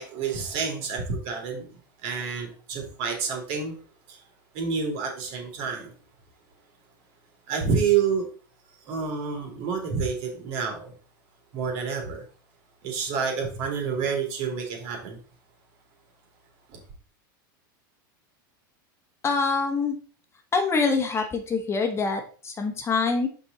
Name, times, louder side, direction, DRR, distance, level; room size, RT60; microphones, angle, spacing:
voice 1, 0.0-1.6 2.0-3.7 4.1-4.2 4.5-5.9 7.5-8.3 8.9-10.9 11.5-12.2 12.8-15.2 16.7-16.8, right 6 dB, 55° right, 2 dB, 3.0 m, -28 dB
voice 2, 19.2-19.9 20.5-23.3, left 4 dB, 25° left, 5 dB, 1.3 m, -25 dB
6.2 x 5.4 x 4.0 m, 0.40 s
hypercardioid pair, 105°, 12 cm